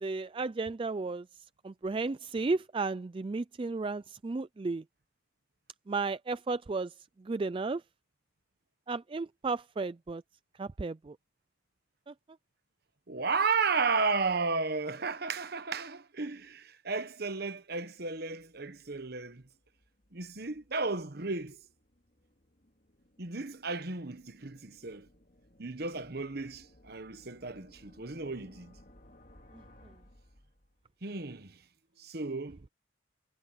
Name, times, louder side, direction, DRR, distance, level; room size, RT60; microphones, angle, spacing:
voice 1, 0.0-1.3 1.6-4.8 5.9-6.9 7.2-7.8 8.9-10.2 10.6-11.2 12.1-12.2, right 3 dB, 25° right, 0.3 m, -33 dB
voice 2, 13.1-19.4 20.1-21.6 23.2-25.1 25.6-28.7 31.0-31.6 32.0-32.6, right 4 dB, 55° right, 1.2 m, -33 dB
sound 1, 18.4-31.0, left 1 dB, 45° left, 2.5 m, -62 dB
head